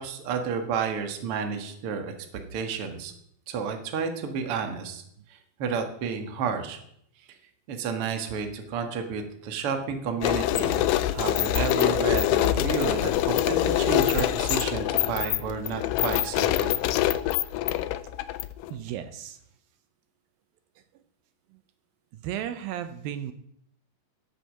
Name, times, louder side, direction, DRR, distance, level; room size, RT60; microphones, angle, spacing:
voice 1, 0.0-2.1 2.5-3.1 3.5-5.0 5.6-6.8 7.7-16.8, right 6 dB, 50° right, 6 dB, 1.9 m, -31 dB
sound 1, 10.2-18.7, left 13 dB, 80° left, 2.1 m, -25 dB
voice 2, 18.7-19.4 21.5-21.6 22.1-23.3, right 10 dB, 80° right, 11 dB, 2.4 m, -34 dB
11.5 x 8.2 x 6.6 m, 0.70 s
omnidirectional pair, 4.2 m